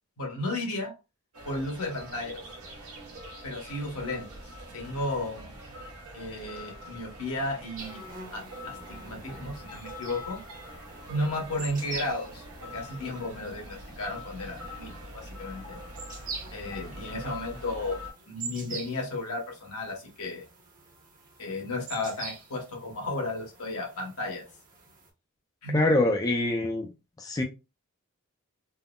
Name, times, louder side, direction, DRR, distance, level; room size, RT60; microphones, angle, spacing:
voice 1, 0.2-0.9 1.4-2.4 3.4-4.2 4.7-5.5 6.1-8.0 8.3-10.4 11.1-12.5 12.7-15.8 16.5-18.0 18.3-20.4 21.4-24.4 25.6-25.8, left 2 dB, 80° left, 1.2 m, -34 dB
sound 1, 1.3-18.1, equal, 80° right, 0.8 m, -44 dB
sound 2, 7.8-25.1, right 5 dB, 40° right, 0.9 m, -46 dB
voice 2, 25.7-26.9 27.2-27.4, left 2 dB, 15° left, 0.4 m, -24 dB
3.6 x 2.0 x 2.2 m
head